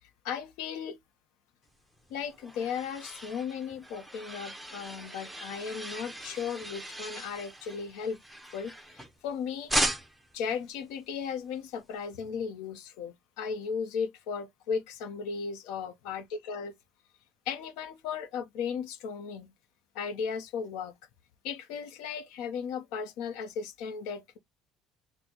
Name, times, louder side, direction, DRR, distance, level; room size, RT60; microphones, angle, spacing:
voice 1, 0.2-1.0 2.1-8.2 8.5-9.7 10.3-16.7 17.5-19.5 19.9-20.9 21.4-24.4, left 6 dB, 80° left, 0.6 m, -36 dB
sound 1, 2.0-9.3 9.7-10.4, right 1 dB, ahead, 0.5 m, -37 dB
4.3 x 2.0 x 2.8 m
cardioid pair, 155°, 0 cm